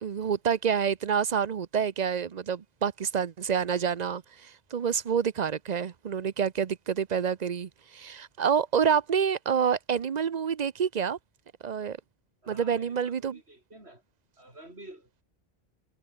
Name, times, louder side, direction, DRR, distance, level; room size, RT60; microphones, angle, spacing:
voice 1, 0.0-11.2 11.6-12.0 12.5-13.4, right 7 dB, 45° right, 0.7 m, -28 dB
voice 2, 12.4-14.0 14.4-15.2, right 1 dB, 80° right, 7.6 m, -50 dB
omnidirectional pair, 1.1 m